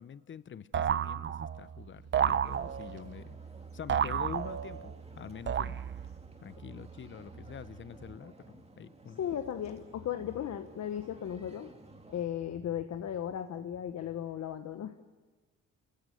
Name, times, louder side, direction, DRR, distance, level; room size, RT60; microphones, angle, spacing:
voice 1, 0.0-3.4 3.7-5.8 6.4-9.2, left 8 dB, 40° left, 16 dB, 0.8 m, -46 dB
sound 1, 0.7-1.7 2.1-3.1 3.9-4.9 5.5-6.2, right 8 dB, 40° right, 0.6 m, -31 dB
sound 2, 1.4-8.1, right 5 dB, 55° right, 1.4 m, -50 dB
sound 3, 2.4-12.3, right 2 dB, 20° right, 2.1 m, -55 dB
voice 2, 9.2-11.7 12.1-15.0, left 9 dB, 60° left, 8 dB, 1.2 m, -36 dB
29.5 x 15.5 x 7.8 m, 1.3 s
cardioid pair, 90°, 30 cm